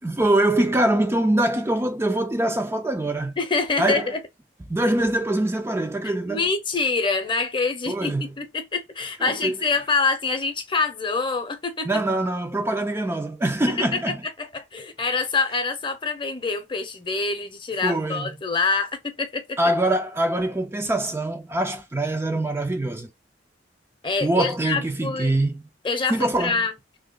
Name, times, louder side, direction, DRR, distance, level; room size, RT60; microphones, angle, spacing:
voice 1, 0.0-3.4 3.8-4.1 4.7-6.5 7.9-8.3 9.2-9.5 11.9-14.2 17.8-18.3 19.6-23.1 24.2-25.6 26.1-26.6, right 1 dB, 15° right, 0.4 m, -23 dB
voice 2, 3.4-4.2 6.0-11.9 13.8-14.0 14.4-19.6 24.0-25.3 25.8-26.7, left 4 dB, 30° left, 0.7 m, -26 dB
3.1 x 2.8 x 3.8 m
head